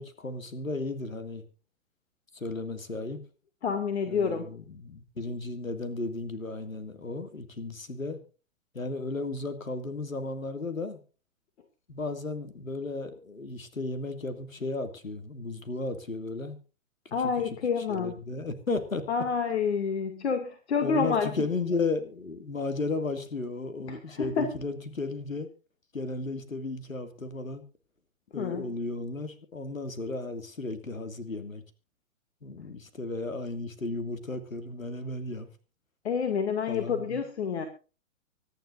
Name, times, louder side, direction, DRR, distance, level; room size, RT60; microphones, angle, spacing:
voice 1, 0.0-1.5 2.3-3.2 4.1-8.2 8.7-11.0 11.9-16.6 17.0-17.2 17.8-19.1 20.8-25.5 25.9-27.6 28.3-31.6 32.4-35.5 36.7-37.2, left 3 dB, 80° left, 11 dB, 2.3 m, -34 dB
voice 2, 3.6-4.5 17.1-18.1 19.1-21.3 23.9-24.5 28.3-28.7 36.0-37.7, left 6 dB, 55° left, 7 dB, 2.2 m, -28 dB
24.5 x 10.5 x 2.5 m, 0.34 s
figure-of-eight pair, 115°, 39 cm